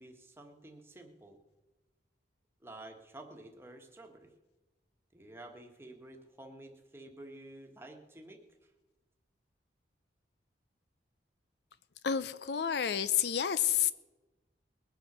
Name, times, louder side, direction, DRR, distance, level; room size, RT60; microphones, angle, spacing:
voice 1, 0.0-1.4 2.6-4.3 5.1-8.4, right 1 dB, 15° right, 3 dB, 1.4 m, -51 dB
voice 2, 12.0-13.9, left 9 dB, 65° left, 15 dB, 0.5 m, -29 dB
20.5 x 7.9 x 6.0 m, 1.1 s
head